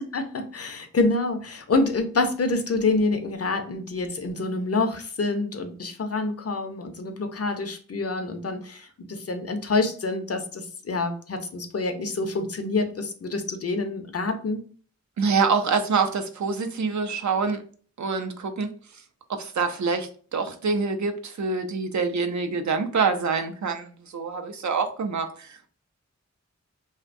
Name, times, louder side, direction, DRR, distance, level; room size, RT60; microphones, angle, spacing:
voice 1, 0.1-14.6, left 3 dB, 55° left, 6 dB, 0.5 m, -27 dB
voice 2, 15.2-17.6 18.0-18.7 19.3-25.7, right 5 dB, 75° right, 6 dB, 0.4 m, -26 dB
2.6 x 2.1 x 2.5 m, 0.43 s
wide cardioid pair, 50°, 29 cm